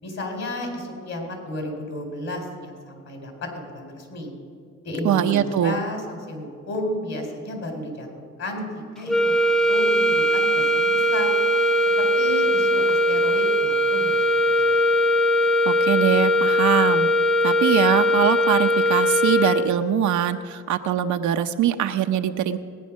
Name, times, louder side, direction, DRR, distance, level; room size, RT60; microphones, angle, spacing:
voice 1, 0.0-4.3 4.8-8.1 8.4-8.7 8.9-11.3 12.0-14.2 14.5-14.8, left 1 dB, 60° left, 2 dB, 4.3 m, -32 dB
voice 2, 5.0-5.8 15.6-17.1 17.4-22.6, right 10 dB, 70° right, 7 dB, 0.8 m, -22 dB
sound 1, 9.1-20.0, equal, ahead, 0.5 m, -20 dB
19.0 x 9.3 x 6.3 m, 2.1 s
cardioid pair, 90°, 30 cm